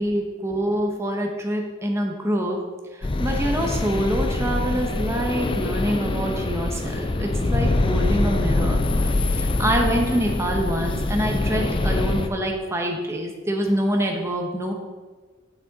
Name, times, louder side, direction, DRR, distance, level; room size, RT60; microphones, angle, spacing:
voice 1, 0.0-2.6 2.9-14.7, equal, 15° right, 1 dB, 0.9 m, -26 dB
sound 1, 3.0-12.3, left 2 dB, 25° left, 0.4 m, -24 dB
8.4 x 6.3 x 4.1 m, 1.4 s
head